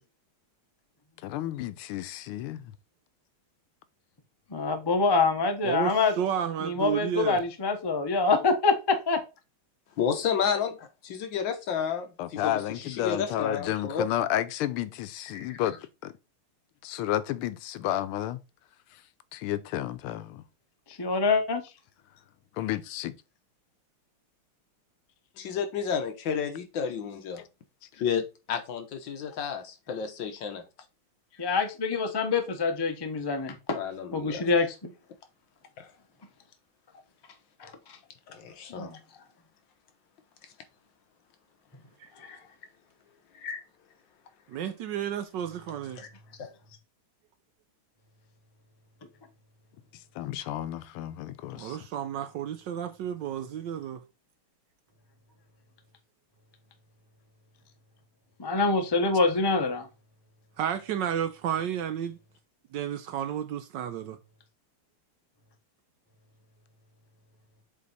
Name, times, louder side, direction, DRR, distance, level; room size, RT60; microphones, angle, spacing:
voice 1, 1.2-2.7 12.2-15.8 16.0-16.1 16.8-18.4 19.3-20.4 22.5-23.2 50.1-51.8, left 13 dB, 90° left, 1.5 m, -31 dB
voice 2, 4.5-6.1 6.6-9.2 21.0-21.6 31.4-33.8 34.1-34.9 37.6-37.7 38.8-39.0 58.4-59.9, left 4 dB, 30° left, 0.4 m, -25 dB
voice 3, 5.6-7.4 42.0-42.1 44.5-46.0 51.5-54.0 60.6-62.2 62.7-64.2, right 9 dB, 70° right, 1.1 m, -32 dB
voice 4, 10.0-14.1 15.3-15.6 25.4-27.4 28.0-28.2 28.5-30.6 33.7-34.4 35.8-35.9 38.3-39.0 42.2-42.4 43.4-43.6 46.0-46.1 46.4-46.5, left 7 dB, 65° left, 1.6 m, -31 dB
7.5 x 3.5 x 4.0 m
omnidirectional pair, 2.3 m